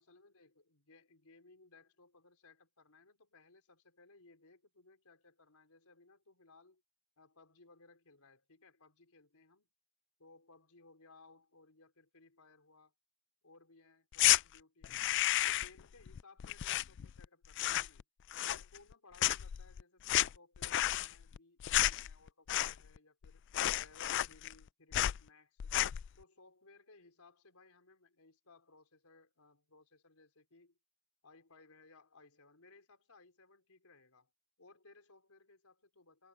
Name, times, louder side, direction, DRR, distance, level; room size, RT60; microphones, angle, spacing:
voice 1, 0.0-6.8 7.2-9.7 10.2-12.9 13.4-15.1 15.4-18.0 18.4-23.5 23.7-25.7 26.2-30.8 31.2-34.3 34.6-36.3, left 3 dB, 90° left, 4.5 m, -63 dB
sound 1, 14.1-14.4 14.8-15.8 16.1-17.3 17.5-18.0 18.3-18.9 19.2-23.0 23.2-23.3 23.5-24.6 24.9-25.2 25.6-26.1, left 14 dB, 55° left, 0.3 m, -32 dB
head